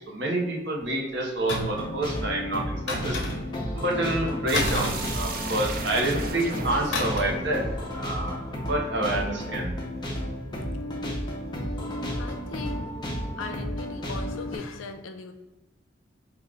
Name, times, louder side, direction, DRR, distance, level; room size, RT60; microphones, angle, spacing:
voice 1, 0.1-3.2 3.7-7.6 7.9-8.4 8.7-9.7, right 1 dB, 60° right, 0 dB, 0.8 m, -28 dB
sound 1, 1.5-1.9 2.9-3.6 4.5-5.7 6.9-7.4 7.7-7.9, left 1 dB, 60° left, 0.8 m, -30 dB
sound 2, 1.7-14.6, equal, 20° left, 0.6 m, -32 dB
sound 3, 4.5-9.2, right 4 dB, 45° right, 0.4 m, -38 dB
voice 2, 12.2-12.9 13.4-15.3, left 4 dB, 90° left, 8 dB, 0.5 m, -39 dB
5.0 x 2.4 x 3.3 m, 1.1 s
head